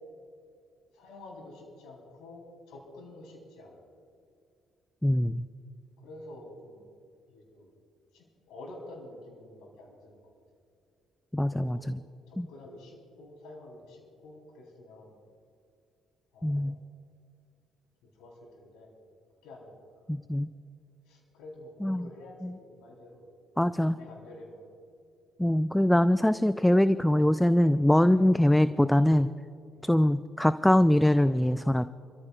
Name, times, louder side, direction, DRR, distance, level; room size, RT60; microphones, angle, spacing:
voice 1, 0.9-3.8 6.0-6.9 7.3-7.7 8.1-10.2 11.4-11.8 12.3-15.1 16.3-16.7 18.0-18.9 19.4-19.8 21.1-23.2 23.8-24.6 29.7-29.9, left 1 dB, 65° left, 0 dB, 3.7 m, -49 dB
voice 2, 5.0-5.4 11.3-12.0 12.4-12.5 16.4-16.8 20.1-20.5 21.8-22.1 22.4-22.5 23.6-24.0 25.4-29.3 29.8-31.9, left 1 dB, 5° left, 14 dB, 0.3 m, -23 dB
28.5 x 14.0 x 2.4 m, 2.4 s
hypercardioid pair, 50°, 0 cm